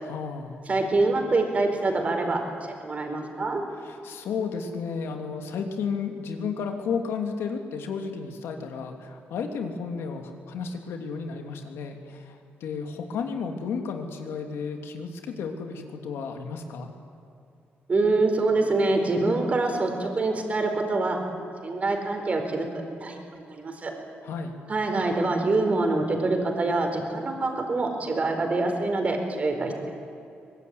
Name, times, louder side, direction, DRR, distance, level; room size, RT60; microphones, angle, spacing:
voice 1, 0.0-0.6 3.8-16.9 24.2-24.6, left 5 dB, 85° left, 4 dB, 3.0 m, -33 dB
voice 2, 0.7-3.6 17.9-21.2 21.6-22.7 23.0-23.9 24.7-29.9, right 2 dB, 35° right, 4 dB, 4.7 m, -25 dB
23.5 x 21.5 x 9.7 m, 2.7 s
cardioid pair, 110°, 4 cm